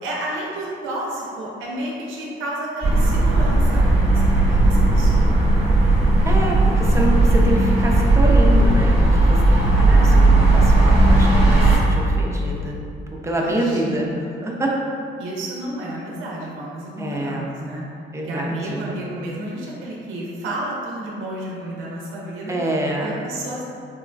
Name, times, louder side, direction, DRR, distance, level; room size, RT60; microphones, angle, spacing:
voice 1, 0.0-5.4 9.9-10.3 13.4-14.2 15.2-17.8 18.2-22.5 23.0-23.6, right 1 dB, 80° right, -3 dB, 0.5 m, -31 dB
sound 1, 2.8-11.8, right 2 dB, 30° right, 0.9 m, -15 dB
voice 2, 6.2-12.8 13.1-14.1 14.4-14.7 17.0-17.5 18.1-19.1 22.5-23.2, right 1 dB, 15° right, -2 dB, 0.4 m, -26 dB
3.7 x 2.1 x 2.5 m, 2.4 s
cardioid pair, 90°, 20 cm